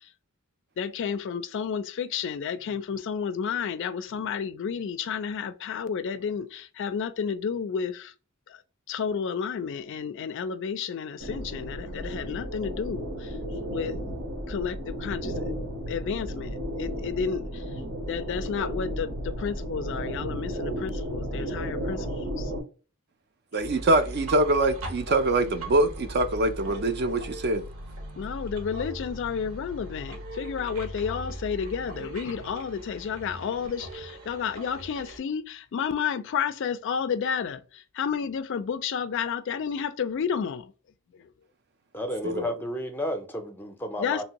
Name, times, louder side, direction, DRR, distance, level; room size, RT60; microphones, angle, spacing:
voice 1, 0.8-8.1 8.9-13.3 13.7-14.0 14.5-15.3 15.9-17.6 18.1-22.5 28.2-40.7 44.0-44.2, left 6 dB, 60° left, 0.3 m, -31 dB
sound 1, 11.2-22.6, equal, 90° right, 1.1 m, -33 dB
voice 2, 23.5-27.6 42.2-42.5, right 2 dB, 50° right, 0.5 m, -24 dB
sound 2, 23.6-35.2, right 1 dB, 70° right, 0.9 m, -39 dB
voice 3, 41.9-44.2, equal, 10° left, 0.5 m, -32 dB
3.1 x 2.6 x 2.9 m
head